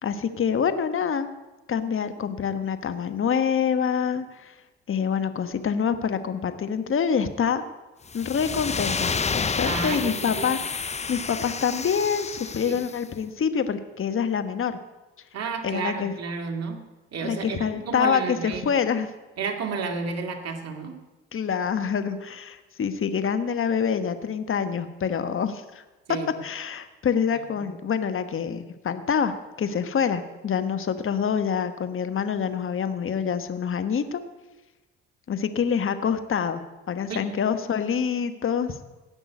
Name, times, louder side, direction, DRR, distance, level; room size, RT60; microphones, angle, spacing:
voice 1, 0.0-1.3 1.7-4.5 4.9-7.6 8.1-10.8 11.1-14.8 15.6-16.1 17.2-19.1 21.3-25.8 26.4-34.2 35.3-36.6 36.9-38.7, left 7 dB, 40° left, 9 dB, 1.3 m, -26 dB
sound 1, 8.1-13.0, left 5 dB, 20° left, 0.7 m, -30 dB
voice 2, 9.6-10.4 12.6-12.8 15.3-16.8 17.1-18.7 19.4-21.0 26.1-26.4 27.3-27.7 37.1-37.2, right 5 dB, 55° right, 4 dB, 2.4 m, -32 dB
17.5 x 6.1 x 9.3 m, 1.1 s
hypercardioid pair, 60°, 31 cm